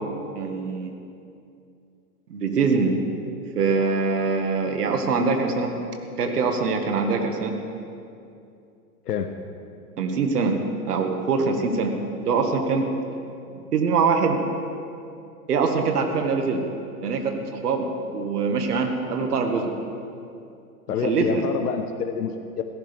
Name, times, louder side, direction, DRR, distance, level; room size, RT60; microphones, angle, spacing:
voice 1, 0.4-0.9 2.3-3.0 3.6-5.8 6.2-7.6 10.0-10.6 10.9-12.9 13.7-14.4 15.5-16.6 17.0-19.7 21.0-21.4, right 4 dB, 85° right, 4 dB, 1.9 m, -23 dB
voice 2, 9.0-9.4 20.9-22.6, left 7 dB, 85° left, 6 dB, 1.0 m, -27 dB
17.0 x 15.0 x 3.5 m, 2.5 s
hypercardioid pair, 135°, 46 cm